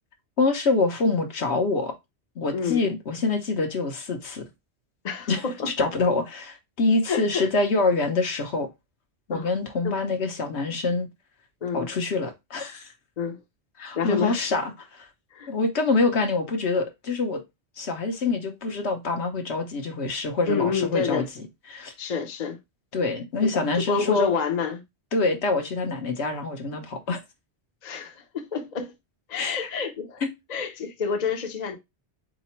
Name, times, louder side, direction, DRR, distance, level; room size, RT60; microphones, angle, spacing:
voice 1, 0.4-1.9 2.4-4.4 5.3-8.7 9.3-11.1 11.7-12.9 13.8-15.1 15.5-17.4 17.8-21.9 22.9-24.3 25.1-27.2 29.4-29.7 30.2-30.3, left 3 dB, 70° left, 1.2 m, -25 dB
voice 2, 2.5-2.9 5.0-5.7 7.1-7.5 9.3-9.5 9.8-10.0 11.6-11.9 13.2-13.4 13.9-14.4 15.3-15.5 20.5-21.3 22.0-22.6 23.7-24.8 27.8-28.9 29.3-30.2 30.5-31.8, left 6 dB, 40° left, 0.8 m, -28 dB
4.0 x 3.0 x 4.2 m
omnidirectional pair, 1.2 m